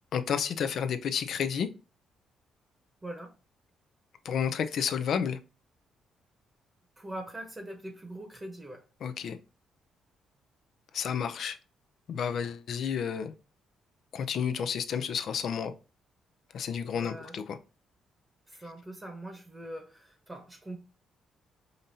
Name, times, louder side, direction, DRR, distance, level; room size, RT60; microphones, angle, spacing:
voice 1, 0.1-1.7 4.2-5.4 9.0-9.4 10.9-11.6 12.1-13.3 14.1-15.7 16.5-17.6, left 7 dB, 65° left, 0.4 m, -31 dB
voice 2, 3.0-3.3 7.0-8.8 16.9-17.3 18.5-20.8, right 1 dB, 15° right, 0.9 m, -42 dB
5.0 x 2.7 x 2.7 m
cardioid pair, 90°, 0 cm